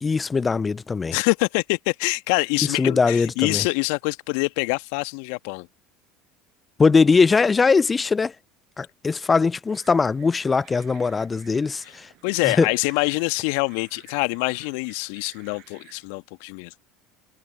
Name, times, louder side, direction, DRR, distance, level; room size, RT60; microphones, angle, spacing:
voice 1, 0.0-1.2 2.8-3.6 6.8-8.3 8.8-12.1 12.4-12.7, left 4 dB, 25° left, 0.7 m, -20 dB
voice 2, 1.1-5.7 12.2-16.8, left 32 dB, 65° left, 1.6 m, -25 dB
sound 1, 9.7-16.1, right 17 dB, 55° right, 5.5 m, -53 dB
figure-of-eight pair, 70°, 0 cm